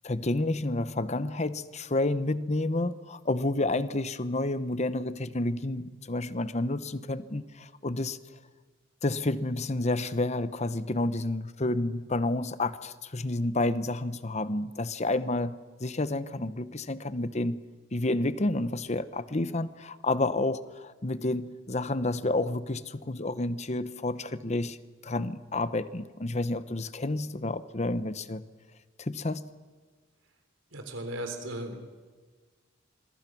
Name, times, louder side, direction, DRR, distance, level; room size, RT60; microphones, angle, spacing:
voice 1, 0.0-8.2 9.0-17.6 17.9-24.8 25.0-28.4 29.0-29.5, left 2 dB, 35° left, 14 dB, 1.0 m, -30 dB
voice 2, 30.7-31.8, right 1 dB, 90° right, 6 dB, 3.7 m, -36 dB
26.5 x 22.0 x 6.1 m, 1.5 s
head